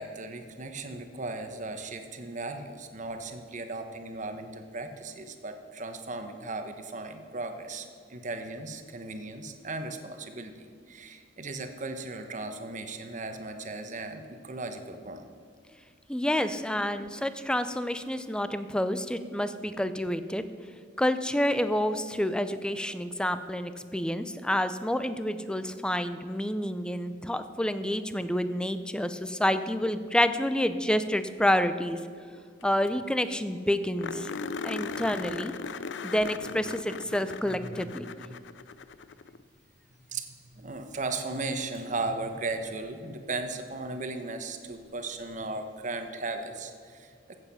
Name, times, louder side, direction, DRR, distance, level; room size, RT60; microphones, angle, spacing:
voice 1, 0.0-15.3 16.4-16.9 37.4-37.9 38.3-38.4 40.1-40.3 40.5-47.3, right 3 dB, 45° right, 6 dB, 1.1 m, -37 dB
voice 2, 16.1-20.4 21.0-32.0 32.6-34.3 34.6-35.5 36.0-38.1, left 1 dB, 5° left, 11 dB, 0.5 m, -28 dB
sound 1, 32.6-32.7 32.9-33.0 33.3-33.4 34.0-39.4 41.8-41.9 44.7-44.8, left 5 dB, 90° left, 0.5 m, -38 dB
14.5 x 8.1 x 5.7 m, 2.2 s
head